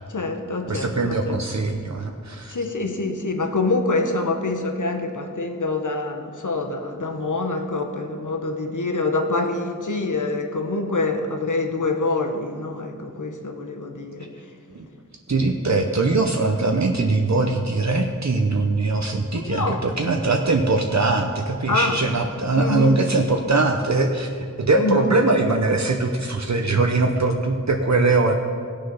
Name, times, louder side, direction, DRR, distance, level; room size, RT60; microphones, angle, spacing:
voice 1, 0.1-1.4 2.5-14.3 19.3-19.9 21.7-22.0 22.5-23.0 24.8-25.1, left 3 dB, 65° left, 5 dB, 1.3 m, -25 dB
voice 2, 0.7-2.5 14.7-14.9 15.3-28.3, right 3 dB, 55° right, 3 dB, 0.9 m, -21 dB
18.0 x 6.7 x 5.7 m, 2.1 s
wide cardioid pair, 60°, 32 cm